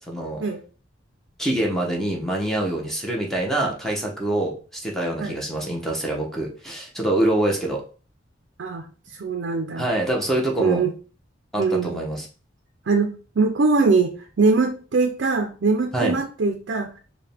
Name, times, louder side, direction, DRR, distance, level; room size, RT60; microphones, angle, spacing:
voice 1, 0.1-0.4 1.4-7.8 9.8-10.8 11.5-12.3 15.9-16.1, right 1 dB, ahead, -1 dB, 0.8 m, -25 dB
voice 2, 9.2-9.9 10.6-10.9 11.6-12.0 12.9-16.9, right 4 dB, 65° right, 5 dB, 0.5 m, -22 dB
4.7 x 2.2 x 3.4 m, 0.37 s
head